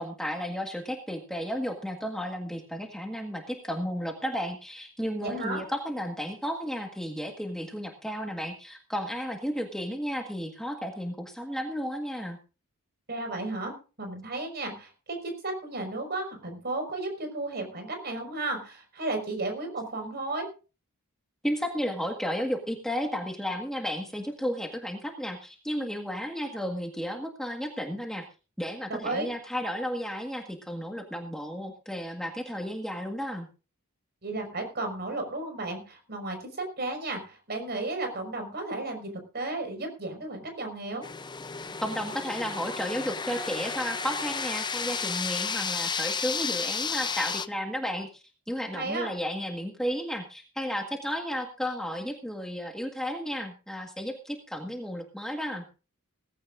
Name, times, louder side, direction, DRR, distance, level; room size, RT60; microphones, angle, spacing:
voice 1, 0.0-12.4 21.4-28.2 28.6-33.5 41.8-55.6, equal, ahead, 2 dB, 1.7 m, -33 dB
voice 2, 5.2-5.6 13.1-20.5 28.9-29.3 34.2-41.0 48.7-49.1, right 2 dB, 50° right, 5 dB, 5.6 m, -34 dB
sound 1, 41.0-47.5, left 5 dB, 20° left, 0.7 m, -32 dB
18.5 x 15.5 x 2.6 m, 0.34 s
head